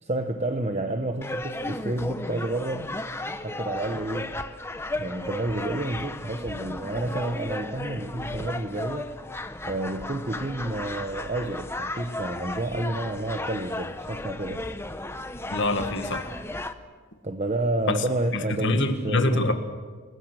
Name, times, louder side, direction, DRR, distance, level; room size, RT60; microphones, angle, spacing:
voice 1, 0.0-2.9 3.4-4.3 5.0-9.1 9.6-14.7 17.2-19.5, right 2 dB, 30° right, 7 dB, 1.0 m, -30 dB
sound 1, 1.2-16.7, left 2 dB, 10° left, 0.9 m, -34 dB
voice 2, 15.5-16.3 17.9-18.0 18.3-19.5, left 2 dB, 55° left, 7 dB, 2.0 m, -25 dB
29.0 x 20.0 x 6.4 m, 1.5 s
head